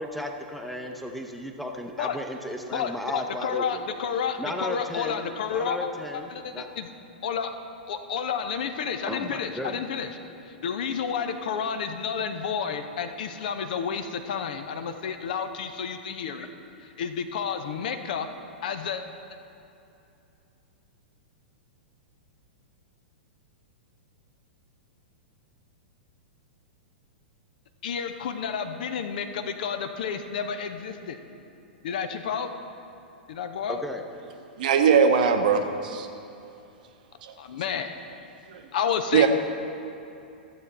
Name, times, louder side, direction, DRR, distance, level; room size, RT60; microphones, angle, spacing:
voice 1, 0.0-3.8 4.4-6.7 9.1-9.8 10.3-10.4 33.7-34.0, left 1 dB, ahead, 3 dB, 0.8 m, -35 dB
voice 2, 2.7-5.9 6.3-6.9 7.2-7.5 7.9-10.1 10.5-16.5 17.0-18.3 18.6-19.0 27.8-31.2 31.8-32.5 33.3-33.8 37.4-38.0 38.7-39.3, left 7 dB, 55° left, 8 dB, 0.7 m, -30 dB
voice 3, 34.6-36.1 37.2-37.3 38.5-38.6 39.1-39.3, right 6 dB, 55° right, 6 dB, 0.8 m, -20 dB
14.0 x 7.8 x 4.2 m, 2.7 s
figure-of-eight pair, 100°, 5 cm